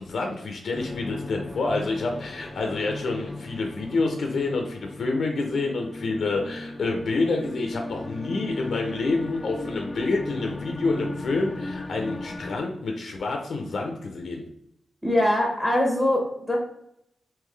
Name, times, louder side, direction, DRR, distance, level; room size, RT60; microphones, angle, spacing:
voice 1, 0.0-14.4, left 3 dB, 75° left, 2 dB, 0.6 m, -28 dB
sound 1, 0.7-12.6, left 2 dB, 25° left, 0.4 m, -37 dB
voice 2, 15.0-16.6, left 1 dB, 5° left, -1 dB, 1.1 m, -22 dB
3.7 x 2.9 x 3.3 m, 0.75 s
cardioid pair, 85°, 0 cm